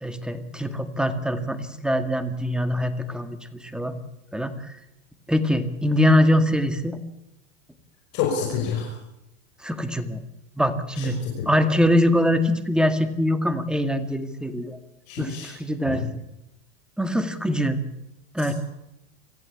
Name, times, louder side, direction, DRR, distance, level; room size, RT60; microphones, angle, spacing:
voice 1, 0.0-3.9 4.3-4.7 5.3-7.0 9.6-10.2 10.6-11.2 11.5-14.8 15.2-16.1 17.0-17.8 18.3-18.5, left 1 dB, ahead, 9 dB, 1.9 m, -23 dB
voice 2, 8.1-8.9 11.0-11.5 15.1-15.5 15.9-16.1, left 7 dB, 50° left, 0 dB, 6.0 m, -28 dB
25.0 x 15.5 x 8.5 m, 0.89 s
hypercardioid pair, 115°, 38 cm